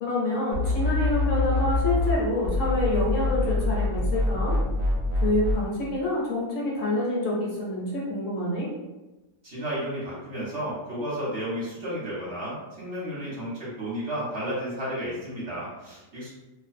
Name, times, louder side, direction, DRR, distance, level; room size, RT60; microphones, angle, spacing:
voice 1, 0.0-4.6 5.2-8.7, left 1 dB, 65° left, -4 dB, 0.9 m, -27 dB
sound 1, 0.5-2.2 2.4-5.6, left 2 dB, 75° right, 1.0 m, -25 dB
voice 2, 9.4-16.3, equal, 55° right, -7 dB, 1.0 m, -32 dB
2.5 x 2.2 x 2.4 m, 1.1 s
omnidirectional pair, 1.6 m